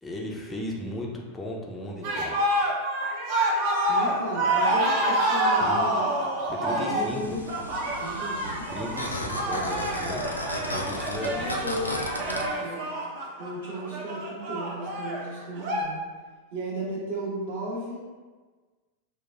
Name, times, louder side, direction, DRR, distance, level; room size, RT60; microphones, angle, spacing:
voice 1, 0.0-2.3 5.6-5.8 6.5-7.4 8.7-10.2 10.6-11.5, left 1 dB, 10° left, -2 dB, 0.5 m, -36 dB
sound 1, 2.0-15.8, right 1 dB, 50° right, 0.6 m, -27 dB
voice 2, 3.7-6.1 6.7-7.6 8.0-8.7 11.2-11.8 12.2-12.9 13.4-16.1 16.5-18.0, right 1 dB, 65° right, -6 dB, 1.3 m, -35 dB
sound 2, 7.0-12.4, left 1 dB, 85° left, 0.3 m, -35 dB
6.0 x 2.2 x 2.3 m, 1.4 s
figure-of-eight pair, 90°, 0 cm